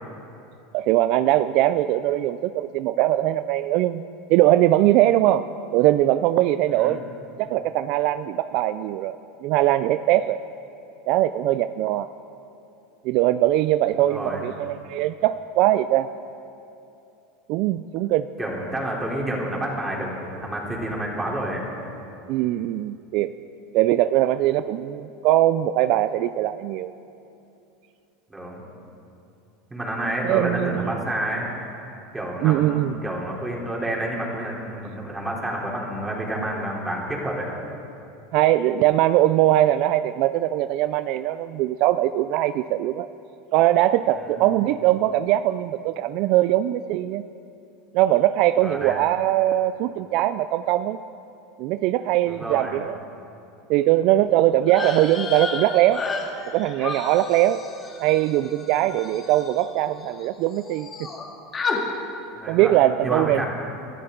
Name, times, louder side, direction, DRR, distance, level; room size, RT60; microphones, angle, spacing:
voice 1, 0.7-4.0 4.3-5.5 5.7-7.0 7.4-10.4 11.1-12.1 13.0-16.1 17.5-18.3 22.3-23.3 23.7-26.9 30.2-30.9 32.4-32.9 38.3-43.1 43.5-47.2 47.9-51.0 51.6-53.0 53.7-56.0 56.5-57.6 58.0-61.1 62.5-63.4, right 14 dB, 60° right, 13 dB, 0.4 m, -21 dB
voice 2, 6.7-7.0 14.0-14.4 18.4-21.7 28.3-28.6 29.7-31.5 32.1-37.5 44.1-44.4 48.6-48.9 52.3-52.7 62.3-63.5, right 1 dB, 10° right, -3 dB, 3.6 m, -29 dB
sound 1, 54.6-60.3 60.5-61.2 61.5-61.8, left 4 dB, 30° left, 2.6 m, -32 dB
22.0 x 12.5 x 3.9 m, 2.7 s
supercardioid pair, 105°, 0 cm